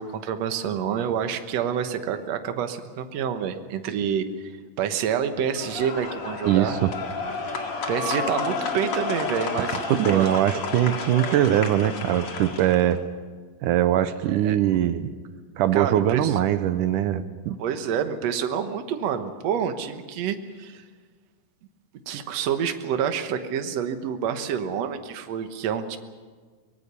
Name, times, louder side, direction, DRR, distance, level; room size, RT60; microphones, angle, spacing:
voice 1, 0.0-4.5 4.8-6.8 7.9-10.6 14.3-14.6 15.7-16.4 17.6-20.8 22.1-26.0, right 8 dB, 60° right, 7 dB, 2.1 m, -28 dB
sound 1, 5.5-12.9, left 3 dB, 45° left, 2.6 m, -31 dB
voice 2, 6.5-6.9 9.9-13.0 13.6-15.1 15.6-17.6, right 11 dB, 75° right, 12 dB, 2.2 m, -22 dB
23.5 x 20.0 x 6.9 m, 1.5 s
omnidirectional pair, 3.9 m